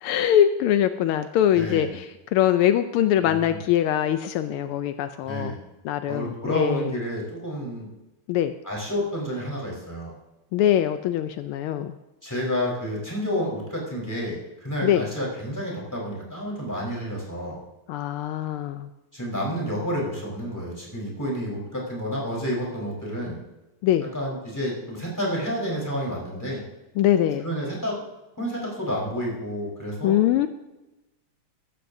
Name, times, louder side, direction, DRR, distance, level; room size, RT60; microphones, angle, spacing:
voice 1, 0.0-2.1 2.3-5.5 5.8-6.9 8.3-8.5 10.5-11.9 14.8-15.0 17.9-18.9 23.8-24.1 27.0-27.5 30.0-30.5, left 11 dB, 80° left, 9 dB, 1.5 m, -22 dB
voice 2, 1.5-1.9 3.2-3.6 5.2-5.6 6.1-7.9 8.6-10.1 12.2-17.6 19.1-23.4 24.1-26.6 27.4-28.0 28.4-30.1, equal, 10° left, -3 dB, 4.1 m, -30 dB
14.5 x 13.5 x 2.7 m, 1.0 s
omnidirectional pair, 2.4 m